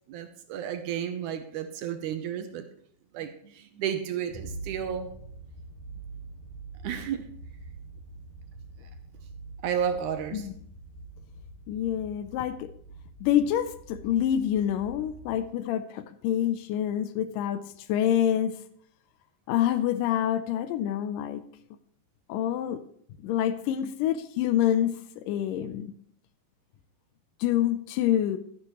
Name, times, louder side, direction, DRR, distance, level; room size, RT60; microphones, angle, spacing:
voice 1, 0.1-2.7 3.1-5.1 6.8-7.2 9.6-10.4, right 8 dB, 75° right, 8 dB, 2.1 m, -32 dB
sound 1, 4.3-15.5, right 3 dB, 25° left, 1.2 m, -45 dB
voice 2, 11.7-12.7 13.2-17.6 17.9-18.6 19.5-21.4 22.3-22.8 23.2-25.0 25.3-25.9 27.4-28.4, left 10 dB, 80° left, 11 dB, 2.2 m, -26 dB
12.5 x 10.0 x 3.0 m, 0.64 s
omnidirectional pair, 3.9 m